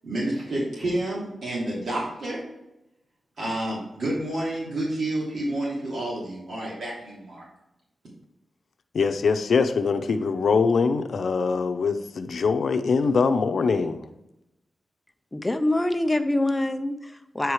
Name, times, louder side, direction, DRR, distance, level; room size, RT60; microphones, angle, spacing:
voice 1, 0.0-2.4 3.4-7.4, right 1 dB, 75° right, -6 dB, 2.9 m, -29 dB
voice 2, 8.9-14.0, left 5 dB, 75° left, 8 dB, 0.7 m, -23 dB
voice 3, 15.3-17.5, left 1 dB, 15° left, 8 dB, 0.5 m, -25 dB
9.3 x 4.7 x 4.8 m, 0.89 s
wide cardioid pair, 155°, 0 cm